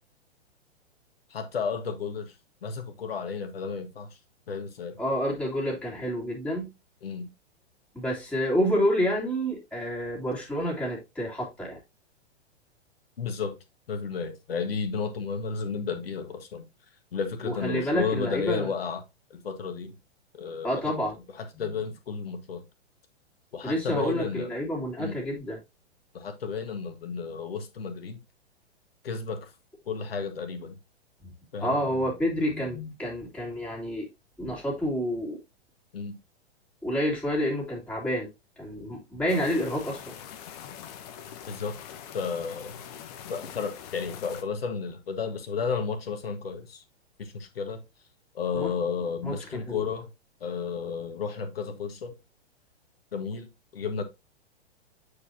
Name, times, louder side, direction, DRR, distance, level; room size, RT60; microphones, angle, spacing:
voice 1, 1.3-2.3 2.6-4.1 4.5-5.0 7.0-7.3 13.2-13.6 13.9-16.6 17.1-19.0 19.3-19.9 20.4-20.8 21.4-22.6 23.5-24.5 25.0-25.2 26.1-28.2 29.0-29.5 29.9-30.8 31.5-31.8 35.9-36.2 41.5-41.8 42.1-42.8 43.3-46.8 47.2-47.8 48.3-50.1 50.4-52.2 53.1-54.0, left 5 dB, 60° left, 1.6 m, -32 dB
voice 2, 5.0-6.7 7.9-11.8 17.4-18.7 20.6-21.1 21.5-21.7 23.6-25.6 31.2-31.3 31.6-34.1 34.4-35.4 36.8-38.3 38.6-40.1 48.5-48.7 49.2-49.8, equal, 5° left, 2.9 m, -29 dB
sound 1, 39.3-44.4, left 9 dB, 35° left, 1.0 m, -43 dB
8.3 x 4.9 x 2.8 m
figure-of-eight pair, 110°, 34 cm